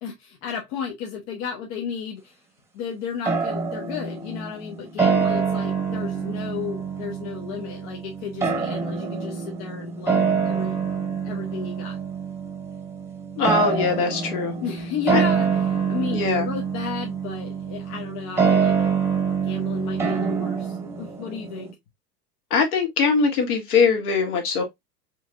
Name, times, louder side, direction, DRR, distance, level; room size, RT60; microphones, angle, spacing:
voice 1, 0.0-2.4 2.7-10.8 11.2-12.0 14.6-18.9 19.4-21.7, left 7 dB, 45° left, 1.2 m, -34 dB
sound 1, 3.2-21.7, right 6 dB, 5° right, 1.1 m, -26 dB
voice 2, 13.4-14.5 15.1-15.2 16.1-16.5 22.5-24.6, left 5 dB, 60° left, 2.0 m, -21 dB
4.4 x 3.6 x 2.5 m
hypercardioid pair, 95°, 49 cm